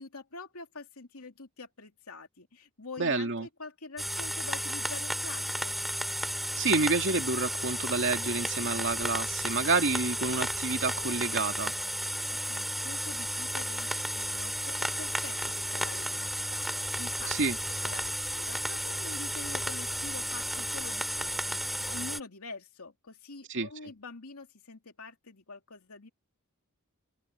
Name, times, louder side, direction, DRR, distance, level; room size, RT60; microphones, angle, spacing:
voice 1, 0.0-5.8 12.3-17.4 17.8-26.1, left 3 dB, 90° left, 2.7 m, -46 dB
voice 2, 3.0-3.5 6.6-11.7 17.3-17.6 23.5-23.7, right 3 dB, 60° right, 2.5 m, -29 dB
sound 1, 4.0-22.2, equal, ahead, 2.5 m, -33 dB
head